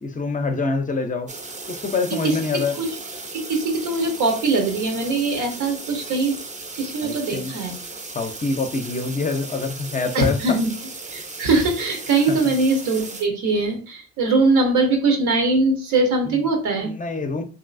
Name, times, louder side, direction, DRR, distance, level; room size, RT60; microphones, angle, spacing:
voice 1, 0.0-1.3 1.7-2.8 7.0-7.5 8.1-10.6 12.3-12.5 16.3-16.4 16.8-17.4, left 4 dB, 25° left, 0.5 m, -25 dB
sound 1, 1.3-13.3, right 3 dB, 25° right, 0.5 m, -36 dB
voice 2, 3.3-6.4 6.7-7.7 10.1-10.7 11.1-16.9 17.2-17.3, right 3 dB, 90° right, 1.0 m, -21 dB
3.1 x 2.7 x 2.5 m
cardioid pair, 90°, 30 cm